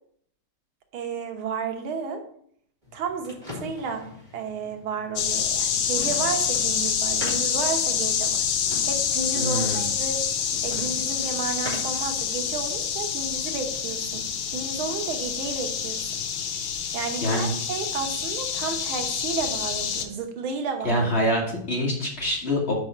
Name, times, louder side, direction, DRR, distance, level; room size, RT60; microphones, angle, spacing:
voice 1, 0.9-2.2 2.9-4.1 4.3-8.5 8.8-10.2 10.6-16.0 16.9-21.1, right 5 dB, 80° right, 5 dB, 1.8 m, -32 dB
sound 1, 2.8-12.1, left 1 dB, 20° right, 2.5 m, -42 dB
sound 2, 5.2-20.1, left 7 dB, 75° left, 1.6 m, -27 dB
voice 2, 9.3-9.9 17.2-17.5 20.8-22.7, equal, 35° left, -2 dB, 1.5 m, -25 dB
5.4 x 5.3 x 5.8 m, 0.64 s
omnidirectional pair, 2.2 m